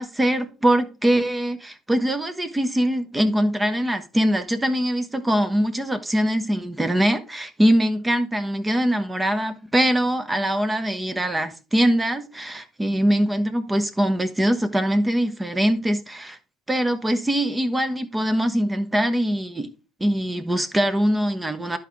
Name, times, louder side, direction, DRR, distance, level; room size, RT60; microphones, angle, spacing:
voice 1, 0.0-16.4 16.7-19.7 20.0-21.8, equal, 15° right, 1.1 m, -22 dB
11.0 x 4.6 x 3.7 m
hypercardioid pair, 70°, 0 cm